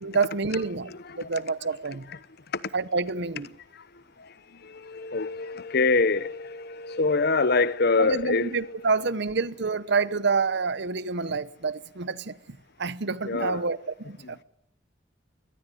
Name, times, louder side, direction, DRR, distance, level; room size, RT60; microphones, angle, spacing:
voice 1, 0.0-0.9 1.2-2.1 2.7-3.5 8.0-14.4, right 4 dB, 65° right, 1.0 m, -28 dB
voice 2, 0.9-1.4 2.1-2.2 3.7-3.8 4.2-4.3 4.6-8.9 13.2-13.7 14.2-14.3, left 3 dB, 55° left, 0.9 m, -26 dB
22.5 x 19.0 x 9.3 m
head